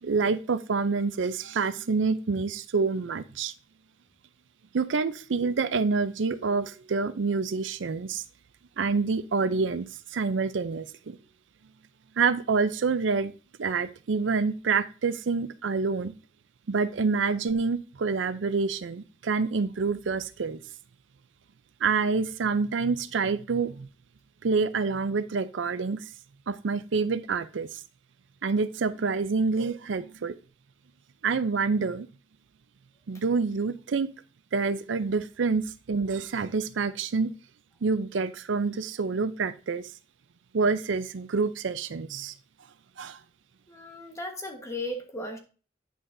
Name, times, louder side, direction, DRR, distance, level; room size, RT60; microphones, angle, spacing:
voice 1, 0.0-3.5 4.7-8.2 8.8-9.8 10.1-11.2 12.2-13.3 13.6-16.1 16.7-20.6 21.8-23.9 24.4-26.0 26.5-27.7 28.4-30.4 31.2-32.1 33.1-34.1 34.5-37.3 37.8-39.9 40.5-42.3 43.0-43.2, right 4 dB, 85° right, 14 dB, 0.5 m, -27 dB
voice 2, 43.7-45.4, left 1 dB, 15° left, 4 dB, 1.2 m, -36 dB
9.3 x 6.3 x 2.6 m, 0.35 s
head